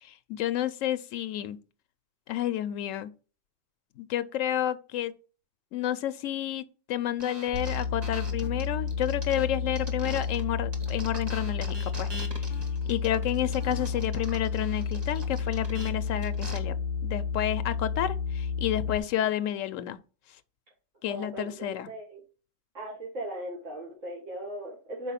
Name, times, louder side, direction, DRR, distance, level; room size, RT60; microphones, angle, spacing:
voice 1, 0.0-1.6 2.3-3.1 4.0-5.1 5.7-12.1 12.4-12.5 12.9-20.0 21.0-21.9, left 11 dB, 85° left, 0.9 m, -30 dB
sound 1, 7.2-10.4 10.7-16.6, equal, 20° right, 1.2 m, -43 dB
sound 2, 7.5-19.0, left 6 dB, 40° right, 1.8 m, -31 dB
voice 2, 21.1-22.2 22.7-25.1, right 1 dB, 80° right, 2.1 m, -38 dB
5.3 x 4.3 x 5.7 m
omnidirectional pair, 1.3 m